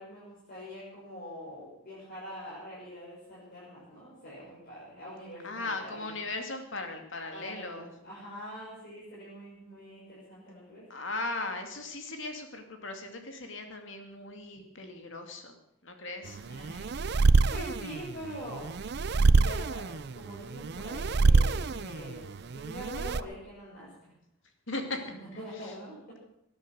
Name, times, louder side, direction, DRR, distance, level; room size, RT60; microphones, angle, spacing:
voice 1, 0.0-6.1 7.3-10.9 16.3-18.8 19.1-22.3 22.5-23.9 25.1-26.2, equal, 45° left, -8 dB, 6.0 m, -44 dB
voice 2, 5.4-7.9 10.9-15.5 15.8-16.4 24.7-25.0, left 2 dB, 60° left, 5 dB, 2.4 m, -38 dB
sound 1, 16.3-23.2, right 3 dB, 50° right, 0.5 m, -26 dB
19.0 x 10.5 x 6.3 m, 0.78 s
head